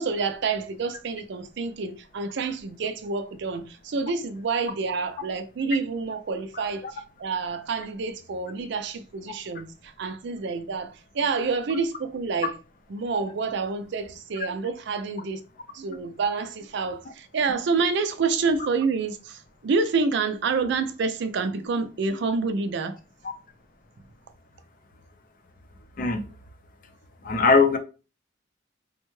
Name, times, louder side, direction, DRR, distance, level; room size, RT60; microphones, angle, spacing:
voice 1, 0.0-12.5 12.9-15.4 15.7-23.0, right 4 dB, 60° right, 0.4 m, -28 dB
voice 2, 27.2-27.8, left 4 dB, 45° left, 0.5 m, -19 dB
3.4 x 2.2 x 3.1 m
head